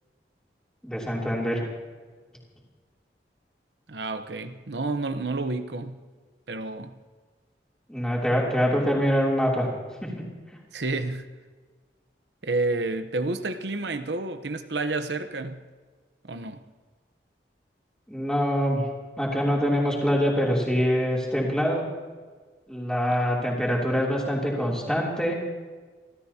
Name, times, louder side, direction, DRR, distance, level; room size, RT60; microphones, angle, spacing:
voice 1, 0.8-1.6 7.9-9.7 10.0-10.2 18.1-18.8 19.2-21.8 22.7-25.4, equal, 5° left, 3.1 m, -24 dB
voice 2, 3.9-6.0 6.5-7.0 10.7-11.3 12.4-15.6 16.2-16.6, right 2 dB, 75° right, 0.9 m, -30 dB
29.5 x 13.5 x 2.9 m
head